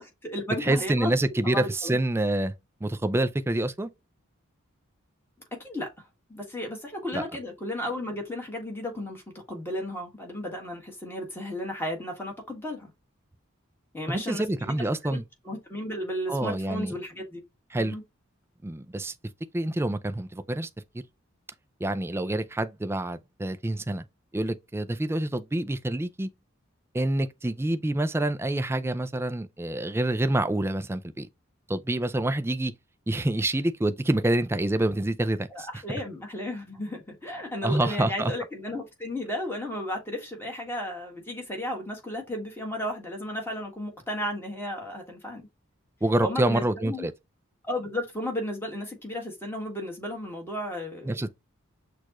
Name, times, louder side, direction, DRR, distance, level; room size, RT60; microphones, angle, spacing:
voice 1, 0.0-1.1 1.4-2.0 5.5-5.9 6.3-9.2 9.5-12.9 13.9-15.2 15.4-17.4 17.8-18.0 35.5-45.5 46.2-47.0 47.7-51.1, left 1 dB, 10° left, 1.6 m, -34 dB
voice 2, 0.6-2.5 2.8-3.9 7.1-7.2 14.1-15.2 16.3-16.9 17.7-17.9 18.6-19.1 19.5-20.7 20.9-21.0 21.8-24.0 24.3-26.3 26.9-31.3 31.7-32.7 33.1-35.7 37.6-38.3 46.0-47.1 51.0-51.3, right 1 dB, 10° right, 0.3 m, -27 dB
6.4 x 2.4 x 3.0 m
head